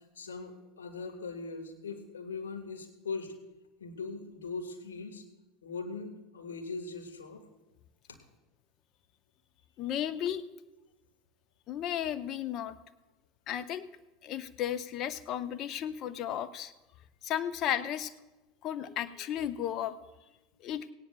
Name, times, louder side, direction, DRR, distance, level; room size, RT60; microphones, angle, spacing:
voice 1, 0.1-3.3 3.8-5.2 5.6-7.5 8.1-8.2, left 4 dB, 80° left, 4 dB, 1.6 m, -40 dB
voice 2, 9.8-10.4 11.7-12.8 13.5-13.9 14.2-16.7 17.2-18.1 18.6-19.9 20.6-20.9, left 10 dB, 45° left, 12 dB, 0.7 m, -34 dB
18.0 x 17.5 x 2.3 m, 1.1 s
figure-of-eight pair, 75°, 0 cm